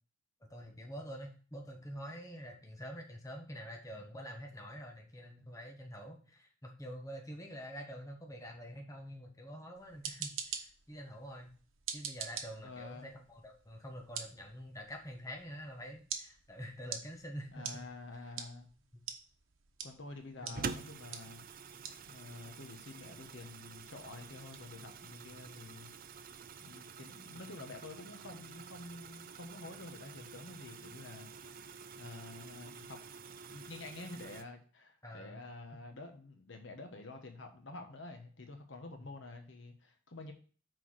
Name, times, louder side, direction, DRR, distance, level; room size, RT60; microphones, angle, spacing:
voice 1, 0.4-11.5 11.9-17.9 18.9-19.0 20.4-20.6 25.3-25.4 35.0-35.4 39.0-39.1, equal, 15° left, 2 dB, 1.2 m, -47 dB
sound 1, 9.7-26.6, right 7 dB, 80° right, 1.1 m, -48 dB
voice 2, 12.6-13.2 17.5-18.7 19.8-21.4 22.1-25.9 26.6-31.3 32.0-33.0 33.5-40.3, left 2 dB, 65° left, 4 dB, 1.2 m, -49 dB
sound 2, 20.5-34.4, right 5 dB, 45° right, 0.5 m, -48 dB
6.1 x 4.6 x 6.2 m, 0.40 s
head